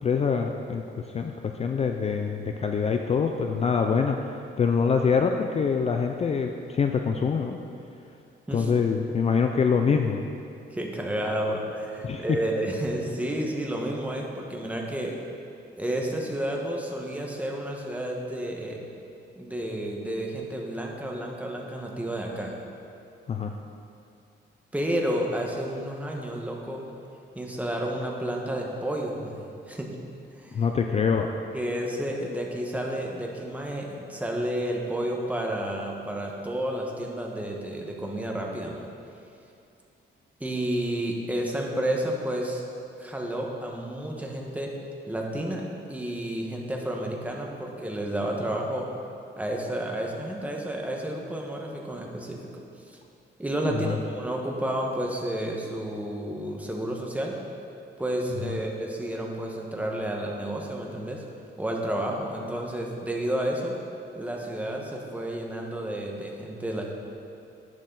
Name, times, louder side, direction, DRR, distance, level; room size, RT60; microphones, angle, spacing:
voice 1, 0.0-7.6 8.5-10.3 12.0-12.2 23.3-23.5 30.5-31.3 53.7-54.0 58.4-58.6, left 6 dB, 35° left, 4 dB, 0.4 m, -25 dB
voice 2, 10.7-15.2 15.8-18.8 19.4-22.5 24.7-26.8 27.3-29.9 30.4-30.6 31.5-38.9 40.4-42.6 43.0-44.7 45.1-45.6 45.9-48.9 49.4-52.5 52.9-53.0 53.4-57.3 58.0-61.2 61.6-63.7 64.1-66.8, right 1 dB, 5° right, -1 dB, 1.2 m, -31 dB
10.5 x 9.5 x 3.9 m, 2.6 s
wide cardioid pair, 150°, 19 cm